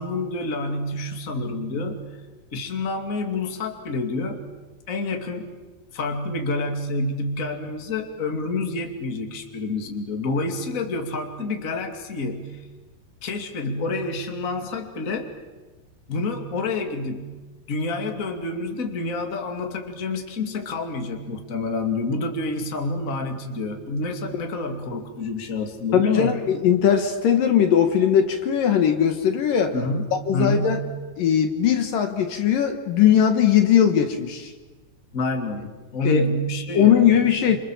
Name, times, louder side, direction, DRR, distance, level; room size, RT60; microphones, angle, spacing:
voice 1, 0.0-2.1 2.5-4.4 4.9-5.5 5.9-12.6 13.2-15.3 16.1-17.4 17.7-26.5 29.7-31.0 35.1-35.7 35.9-37.6, left 2 dB, 25° left, 4 dB, 2.4 m, -28 dB
voice 2, 25.9-29.7 30.3-30.8 31.2-34.5 36.0-36.2 36.7-37.6, left 9 dB, 65° left, 6 dB, 3.0 m, -19 dB
28.5 x 28.0 x 7.4 m, 1.2 s
omnidirectional pair, 4.5 m